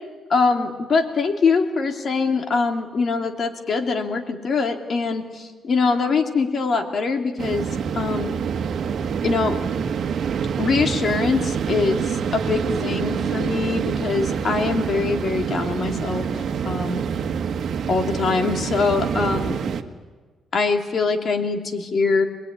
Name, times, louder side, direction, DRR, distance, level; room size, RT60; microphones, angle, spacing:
voice 1, 0.3-7.7 7.9-8.4 9.2-9.6 10.6-16.3 16.6-17.0 17.9-19.6 20.5-22.3, left 4 dB, 50° left, 5 dB, 3.0 m, -23 dB
sound 1, 7.4-19.8, right 7 dB, 60° right, 1.6 m, -26 dB
26.0 x 20.5 x 9.8 m, 1.4 s
cardioid pair, 90°, 0 cm